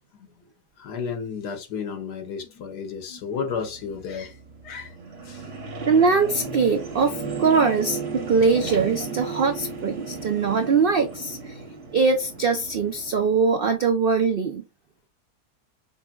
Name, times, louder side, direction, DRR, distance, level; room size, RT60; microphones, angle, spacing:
voice 1, 0.8-4.4 4.6-4.9 5.2-5.5, left 6 dB, 90° left, 1.6 m, -32 dB
sound 1, 3.5-13.3, right 4 dB, 50° right, 1.4 m, -35 dB
voice 2, 5.8-11.6 11.9-14.6, right 5 dB, 80° right, 0.5 m, -22 dB
5.7 x 3.5 x 2.4 m
omnidirectional pair, 1.7 m